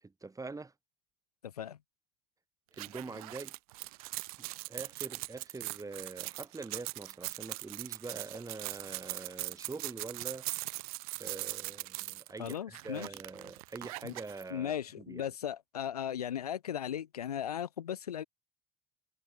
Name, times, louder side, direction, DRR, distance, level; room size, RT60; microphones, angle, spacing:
voice 1, 0.0-0.7 2.7-3.5 4.4-10.5 11.1-15.3, right 3 dB, 15° right, 6.4 m, -44 dB
voice 2, 1.4-1.8 12.4-13.1 14.0-14.1 14.5-18.2, left 9 dB, 85° left, 1.2 m, -37 dB
sound 1, 2.7-14.4, right 22 dB, 70° right, 3.8 m, -41 dB
figure-of-eight pair, 65°, 19 cm